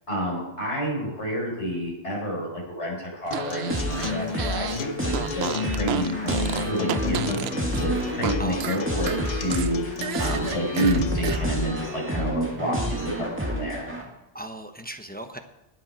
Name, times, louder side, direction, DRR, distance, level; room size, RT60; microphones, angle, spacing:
voice 1, 0.1-7.4 7.8-13.9, equal, 75° left, -3 dB, 5.7 m, -29 dB
Acoustic guitar, 3.3-11.3, left 5 dB, 50° left, 0.7 m, -33 dB
Fart, 3.3-4.8 5.1-8.3 8.6-11.4, right 9 dB, 70° right, 0.8 m, -32 dB
sound 1, 3.7-14.0, equal, 10° right, 2.2 m, -30 dB
voice 2, 8.4-9.0 14.3-15.4, right 1 dB, 10° left, 5 dB, 0.9 m, -37 dB
20.0 x 7.6 x 4.5 m, 1.0 s
omnidirectional pair, 1.2 m